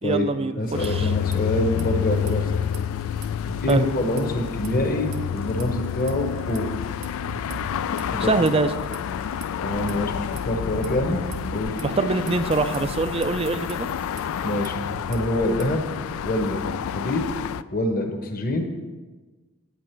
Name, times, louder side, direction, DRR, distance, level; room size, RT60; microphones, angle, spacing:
voice 1, 0.0-1.1 3.7-3.9 8.2-8.7 11.8-13.9, right 3 dB, 25° right, 11 dB, 0.4 m, -24 dB
voice 2, 0.6-2.7 3.6-6.7 8.1-8.4 9.6-11.2 11.5-11.8 14.4-14.8 15.1-15.8 16.2-17.2 17.7-18.6, left 1 dB, 40° left, 4 dB, 1.1 m, -25 dB
sound 1, 0.6-1.4 1.6-1.8 2.2-4.9 5.1-5.6 6.1-9.5 9.9-15.8, right 4 dB, 65° right, 1.1 m, -42 dB
sound 2, 0.7-17.6, left 8 dB, 75° left, 0.3 m, -29 dB
9.1 x 8.6 x 4.5 m, 1.3 s
head